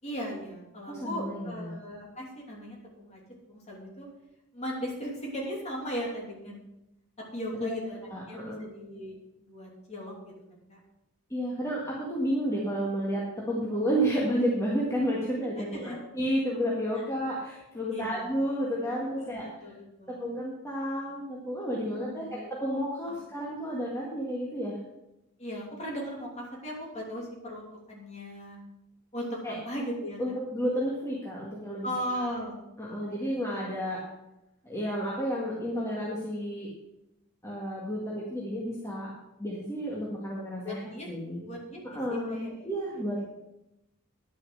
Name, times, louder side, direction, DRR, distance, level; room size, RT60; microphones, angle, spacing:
voice 1, 0.0-3.2 3.5-4.1 4.5-6.7 7.2-8.0 8.3-10.8 15.7-16.0 16.9-17.0 17.9-18.3 19.2-20.2 21.9-22.3 23.1-23.2 25.4-28.6 29.1-30.2 31.8-33.3 40.6-41.1 41.4-42.7 43.2-43.3, equal, 30° left, -2 dB, 2.9 m, -38 dB
voice 2, 0.9-1.7 7.6-7.8 8.1-8.6 11.3-19.4 20.1-24.8 29.4-29.6 30.2-31.9 32.2-32.3 32.8-34.0 34.6-36.7 37.4-39.1 39.4-40.8 41.1-41.4 41.8-42.4 42.6-43.3, equal, 15° left, -5 dB, 1.8 m, -31 dB
10.5 x 6.8 x 6.5 m, 0.90 s
head